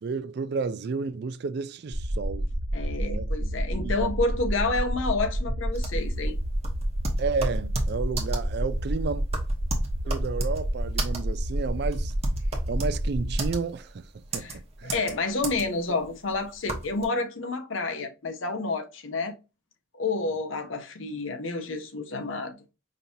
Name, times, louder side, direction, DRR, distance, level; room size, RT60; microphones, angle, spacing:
voice 1, 0.0-2.5 3.0-3.3 3.8-4.1 7.2-9.2 10.0-12.1 12.7-14.0 14.3-14.9, right 4 dB, 55° right, 0.4 m, -31 dB
sound 1, 1.9-13.5, right 1 dB, 10° left, 0.9 m, -30 dB
voice 2, 2.7-6.4 14.3-14.6 14.8-19.3 19.9-22.6, left 3 dB, 75° left, 0.8 m, -29 dB
sound 2, 5.7-17.0, right 2 dB, 30° right, 0.9 m, -33 dB
5.2 x 2.8 x 2.7 m
head